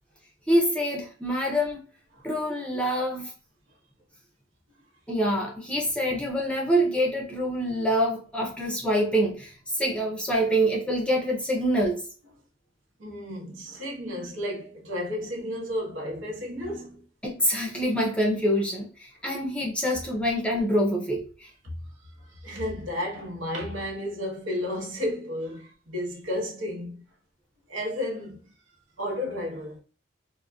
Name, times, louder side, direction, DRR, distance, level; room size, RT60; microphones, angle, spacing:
voice 1, 0.5-1.8 2.2-3.3 5.1-12.0 17.2-21.5, equal, 5° left, 0.5 m, -26 dB
voice 2, 13.0-17.0 21.6-21.8 22.3-27.1 27.7-28.5 29.0-29.8, left 1 dB, 70° right, 1.0 m, -32 dB
3.8 x 2.1 x 2.3 m
head